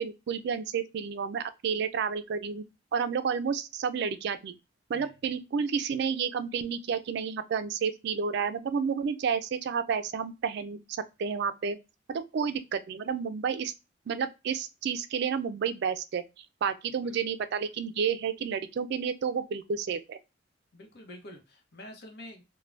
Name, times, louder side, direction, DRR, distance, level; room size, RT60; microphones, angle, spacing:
voice 1, 0.0-2.6 2.9-4.5 4.9-11.8 12.1-13.7 14.1-20.2, right 6 dB, 60° right, 0.3 m, -31 dB
voice 2, 20.7-22.4, left 1 dB, 60° left, 0.8 m, -47 dB
2.5 x 2.1 x 3.2 m
head